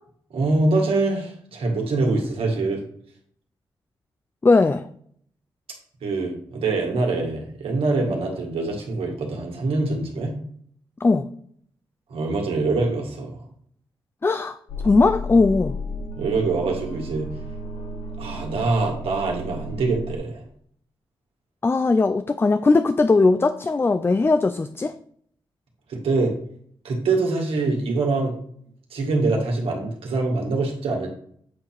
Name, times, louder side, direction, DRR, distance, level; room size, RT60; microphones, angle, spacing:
voice 1, 0.3-2.8 6.0-10.3 12.1-13.4 16.2-17.3 18.2-20.4 25.9-26.3 26.8-28.4 28.9-31.1, right 3 dB, 80° right, 1.9 m, -24 dB
voice 2, 4.4-4.8 11.0-11.3 14.2-14.6 14.8-15.7 21.6-24.9, left 3 dB, 25° left, 0.4 m, -19 dB
sound 1, 14.7-20.2, left 1 dB, 70° left, 1.1 m, -33 dB
7.7 x 2.9 x 5.9 m
cardioid pair, 60°, 10 cm